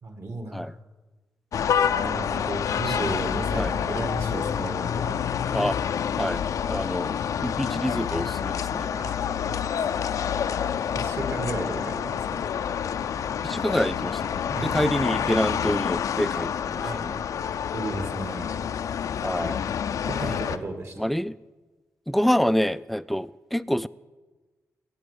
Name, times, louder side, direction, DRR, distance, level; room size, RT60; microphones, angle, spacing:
voice 1, 0.0-0.8 2.0-5.2 8.9-10.1 10.9-12.4 14.5-15.3 16.8-17.0 17.7-18.6 20.0-21.1, right 2 dB, 50° right, 2.1 m, -34 dB
sound 1, 1.5-20.6, left 8 dB, 75° left, 0.5 m, -28 dB
voice 2, 6.2-9.0 13.4-17.2 19.2-19.6 21.0-21.4 22.1-23.9, equal, ahead, 0.3 m, -27 dB
16.5 x 7.5 x 6.9 m
cardioid pair, 95°, 6 cm